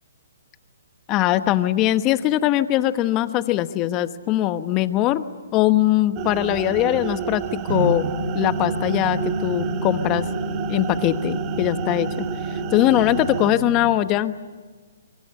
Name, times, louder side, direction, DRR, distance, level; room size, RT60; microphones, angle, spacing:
voice 1, 1.1-5.2 5.5-10.2 10.7-12.3 12.7-14.3, left 14 dB, 25° left, 12 dB, 1.1 m, -21 dB
sound 1, 6.1-13.5, right 9 dB, 25° right, 1.3 m, -31 dB
sound 2, 7.7-13.9, right 1 dB, 80° right, 5.8 m, -28 dB
25.5 x 24.5 x 8.6 m, 1.4 s
hypercardioid pair, 145°, 0 cm